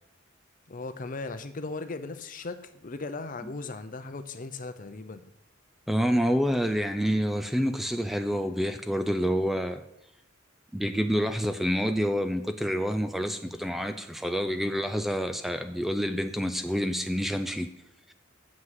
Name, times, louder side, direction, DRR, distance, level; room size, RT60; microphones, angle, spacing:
voice 1, 0.7-5.2, left 3 dB, 40° left, 0.6 m, -37 dB
voice 2, 5.9-9.8 10.7-17.7 18.1-18.2, equal, ahead, 0.4 m, -28 dB
7.4 x 6.2 x 7.5 m
head